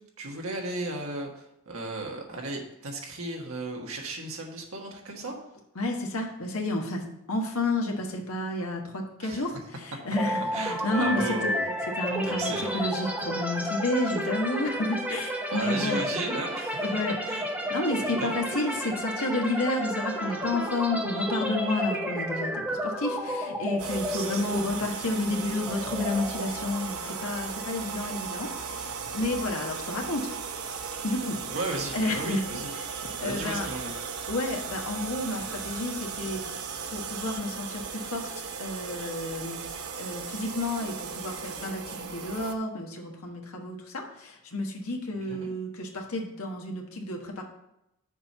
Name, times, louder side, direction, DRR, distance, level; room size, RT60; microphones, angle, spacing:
voice 1, 0.2-5.4 9.2-9.5 10.5-11.7 12.2-12.8 15.5-16.9 17.2-17.4 18.2-18.3 24.1-24.6 31.5-32.7 33.2-33.9 45.3-45.5, right 2 dB, 75° right, 1 dB, 1.5 m, -35 dB
voice 2, 5.7-11.4 12.0-16.0 16.8-17.1 17.7-30.3 31.0-31.4 31.9-32.4 32.7-33.7 34.3-36.4 36.9-38.3 38.6-47.4, left 2 dB, 80° left, 1 dB, 1.3 m, -31 dB
sound 1, 10.2-27.9, equal, 5° right, 1.0 m, -32 dB
sound 2, 23.8-42.5, right 5 dB, 90° right, 0.8 m, -36 dB
6.7 x 4.4 x 6.6 m, 0.84 s
head